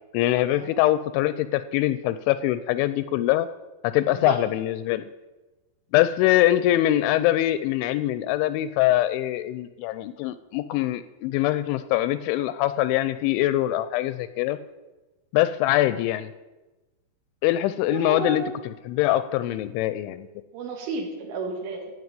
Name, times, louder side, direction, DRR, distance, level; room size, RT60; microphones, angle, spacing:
voice 1, 0.1-3.5 3.8-5.1 5.9-14.6 15.3-16.3 17.4-18.4 18.9-20.3, left 14 dB, 85° left, 14 dB, 2.8 m, -23 dB
voice 2, 4.1-4.4 17.9-18.4 20.5-21.8, right 3 dB, 80° right, 3 dB, 4.4 m, -32 dB
15.5 x 5.5 x 9.0 m, 1.1 s
omnidirectional pair, 5.6 m